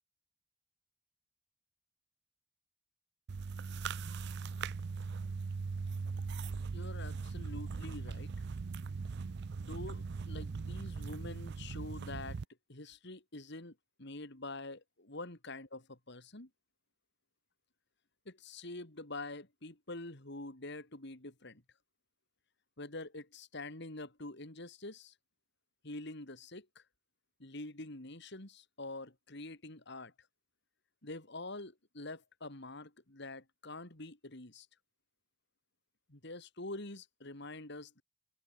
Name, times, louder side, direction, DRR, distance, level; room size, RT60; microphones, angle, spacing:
sound 1, 3.3-12.4, right 4 dB, 55° right, 0.5 m, -40 dB
voice 1, 6.7-8.5 9.5-12.4 12.7-16.5 18.2-21.6 22.8-25.1 25.8-26.8 27.4-30.1 31.0-34.7 36.1-38.0, left 2 dB, 55° left, 3.1 m, -46 dB
open air
head